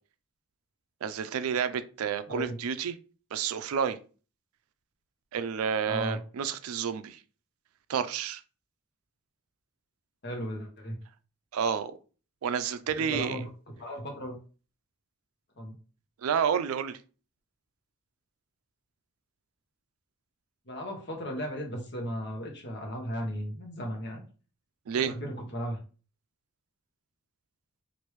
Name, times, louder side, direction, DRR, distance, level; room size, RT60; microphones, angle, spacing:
voice 1, 1.0-2.9 3.3-4.0 5.3-7.2 7.9-8.4 11.5-11.9 12.4-13.4 16.2-17.0 24.9-25.1, right 7 dB, 85° right, 0.4 m, -30 dB
voice 2, 2.3-2.6 5.9-6.2 10.2-11.0 13.0-13.5 13.8-14.3 15.6-15.8 20.7-24.2 24.9-25.8, equal, 50° left, 0.9 m, -36 dB
3.2 x 2.5 x 3.0 m
head